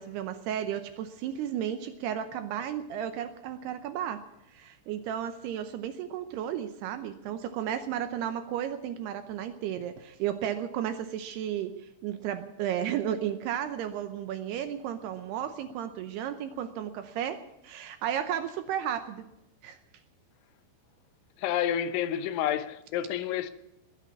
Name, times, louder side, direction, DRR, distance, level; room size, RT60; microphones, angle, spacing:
voice 1, 0.0-4.2 4.5-11.7 12.0-19.3 19.6-19.8, right 10 dB, 75° right, 2.5 m, -33 dB
voice 2, 21.4-23.5, left 10 dB, 85° left, 3.3 m, -29 dB
20.5 x 8.4 x 8.2 m
omnidirectional pair, 5.3 m